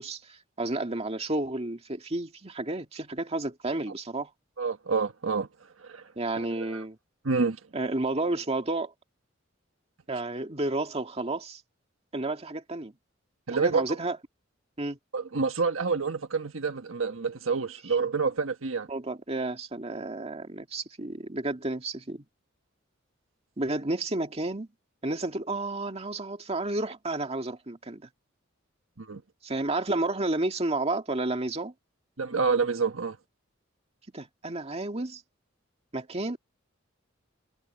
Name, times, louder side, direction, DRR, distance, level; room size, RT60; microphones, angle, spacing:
voice 1, 0.0-4.3 6.2-7.0 7.7-8.9 10.1-11.6 12.1-12.9 13.5-14.2 14.8-15.0 18.9-22.2 23.6-24.7 25.0-28.0 29.4-31.7 34.1-35.2 35.9-36.4, right 2 dB, 30° right, 2.1 m, -31 dB
voice 2, 4.6-5.5 5.8-6.0 6.4-6.8 7.2-7.6 13.5-13.8 15.1-18.9 29.0-29.2 32.2-33.2, right 4 dB, 85° right, 1.4 m, -28 dB
head